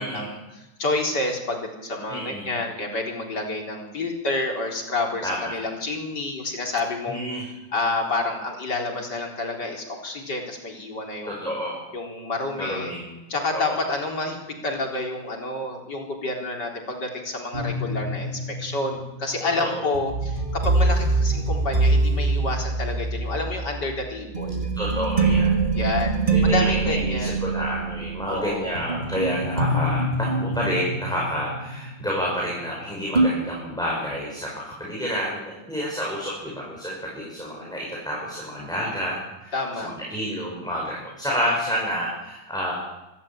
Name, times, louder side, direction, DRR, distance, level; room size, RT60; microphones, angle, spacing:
voice 1, 0.0-7.2 7.7-11.5 11.9-12.9 13.3-24.7 25.7-26.2 26.4-27.4 28.3-28.7 39.5-39.9 41.3-41.4, left 2 dB, 60° left, 1 dB, 4.5 m, -29 dB
voice 2, 2.1-2.5 5.2-5.6 7.1-7.5 11.2-11.8 12.6-13.2 13.5-13.8 19.6-19.9 24.7-25.5 26.3-42.7, equal, ahead, -4 dB, 5.9 m, -29 dB
sound 1, 17.5-32.8 33.2-33.3, right 3 dB, 25° right, 2.5 m, -24 dB
25.5 x 13.0 x 8.8 m, 0.99 s
omnidirectional pair, 2.1 m